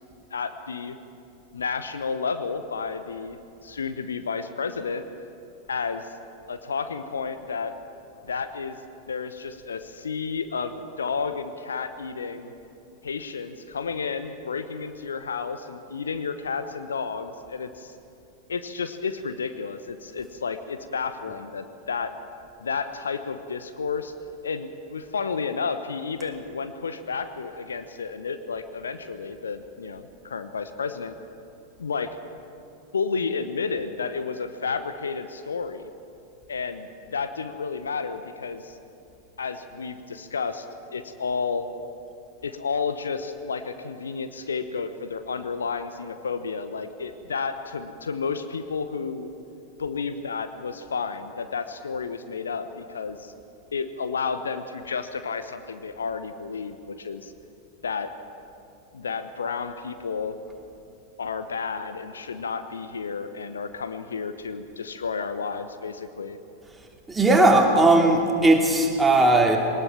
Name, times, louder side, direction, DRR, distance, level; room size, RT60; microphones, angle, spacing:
voice 1, 0.3-1.0 1.5-5.1 5.7-6.1 6.5-7.8 8.2-8.8 9.1-12.5 13.0-17.9 18.5-22.1 22.6-24.1 24.4-31.1 31.8-32.2 32.9-35.9 36.5-38.8 39.4-40.7 40.9-41.7 42.4-49.3 49.8-53.3 53.7-57.3 57.8-58.1 58.9-60.4 61.2-66.4, left 5 dB, 70° left, 10 dB, 1.0 m, -31 dB
voice 2, 67.1-69.6, right 2 dB, 10° right, 0 dB, 3.0 m, -18 dB
21.0 x 19.5 x 7.2 m, 2.7 s
figure-of-eight pair, 90°, 0 cm